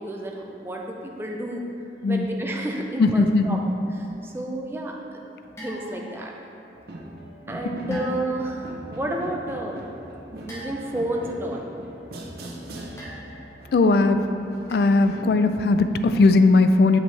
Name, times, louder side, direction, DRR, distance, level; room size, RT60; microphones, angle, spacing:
voice 1, 0.0-1.6 2.1-3.6 4.0-5.0 5.6-6.3 7.5-9.8 10.5-11.8, right 1 dB, 15° right, 0 dB, 0.5 m, -31 dB
voice 2, 3.0-3.6 7.9-8.0 13.7-14.2 14.7-17.0, left 3 dB, 65° left, 9 dB, 0.3 m, -18 dB
sound 1, 5.6-6.3 7.9-8.5 10.5-11.2 13.0-13.6 14.7-15.0, equal, 15° left, 0.9 m, -40 dB
sound 2, 6.8-15.4, right 1 dB, 60° right, 0.7 m, -40 dB
7.2 x 5.2 x 3.3 m, 2.8 s
head